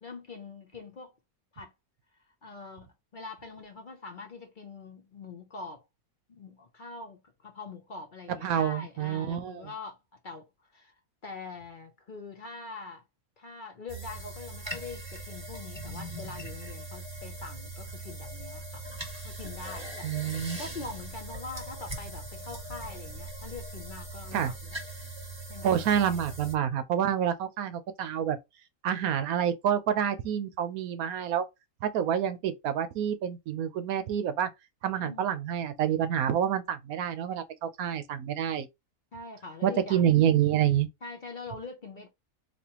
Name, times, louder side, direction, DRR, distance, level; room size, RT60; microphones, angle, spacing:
voice 1, 0.0-1.1 1.5-1.7 2.4-5.8 6.3-10.0 10.2-10.4 10.7-10.9 11.2-13.0 13.4-18.9 19.2-20.3 20.6-24.8 25.5-25.8 35.0-35.3 38.3-38.4 39.1-40.1 41.0-42.1, left 4 dB, 45° left, 0.7 m, -43 dB
voice 2, 8.4-9.6 20.0-20.6 24.3-24.5 25.6-28.4 28.8-31.4 31.8-34.5 34.8-38.7 39.6-40.9, right 9 dB, 90° right, 1.1 m, -28 dB
sound 1, 13.9-26.5, right 1 dB, 20° right, 1.2 m, -40 dB
4.2 x 2.9 x 2.9 m
omnidirectional pair, 1.5 m